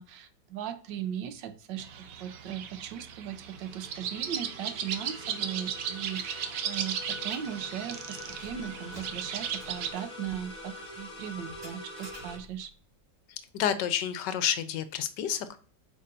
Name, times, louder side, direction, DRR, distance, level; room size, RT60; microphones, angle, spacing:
voice 1, 0.0-12.7, right 9 dB, 90° right, 10 dB, 1.4 m, -38 dB
sound 1, 1.8-9.9, right 8 dB, 65° right, 1.0 m, -36 dB
sound 2, 3.3-12.4, left 1 dB, 25° left, 2.0 m, -45 dB
Keys jangling, 6.1-6.3 6.7-6.8 7.2-7.6 8.0-12.8, equal, 30° right, 3.2 m, -52 dB
voice 2, 13.5-15.6, left 9 dB, 80° left, 12 dB, 1.3 m, -29 dB
8.4 x 5.6 x 2.5 m, 0.42 s
omnidirectional pair, 1.9 m